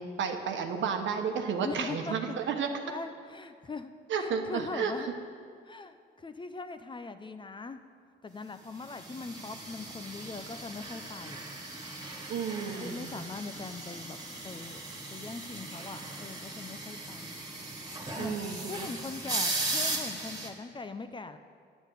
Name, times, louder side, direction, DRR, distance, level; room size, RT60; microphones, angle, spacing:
voice 1, 0.0-2.8 4.1-4.9 12.3-13.1 18.2-18.9, right 6 dB, 70° right, 5 dB, 1.1 m, -32 dB
voice 2, 1.6-2.4 2.9-5.1 5.7-7.8 8.2-11.5 12.7-14.2 14.4-14.9 15.1-17.4 18.2-18.4 18.7-21.4, left 4 dB, 25° left, 9 dB, 0.6 m, -41 dB
sound 1, 8.9-20.5, right 2 dB, 20° right, 1.9 m, -38 dB
11.0 x 6.2 x 8.2 m, 2.2 s
cardioid pair, 90°, 20 cm